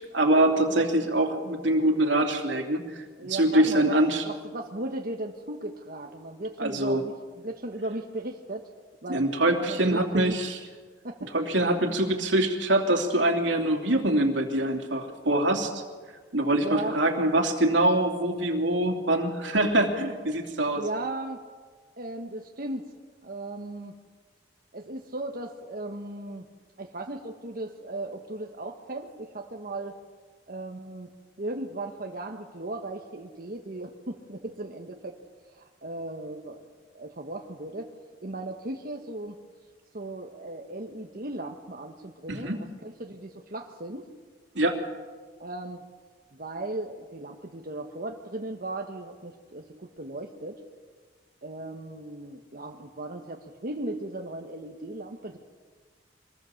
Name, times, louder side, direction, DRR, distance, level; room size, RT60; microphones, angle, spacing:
voice 1, 0.1-4.2 6.6-7.0 9.1-10.6 11.3-15.8 16.3-20.8 42.3-42.6 44.5-44.8, right 1 dB, 85° right, 3 dB, 3.1 m, -24 dB
voice 2, 3.2-3.9 4.2-8.7 9.0-10.4 11.0-11.3 16.6-17.0 20.7-21.4 22.0-22.9 23.2-24.0 24.7-26.4 26.8-30.0 30.5-31.1 31.4-35.2 35.5-36.7 36.9-37.9 38.2-39.4 39.9-44.1 45.4-45.8 46.3-50.6 51.4-55.4, right 2 dB, 50° right, 2 dB, 1.4 m, -37 dB
25.0 x 19.5 x 7.3 m, 1.5 s
head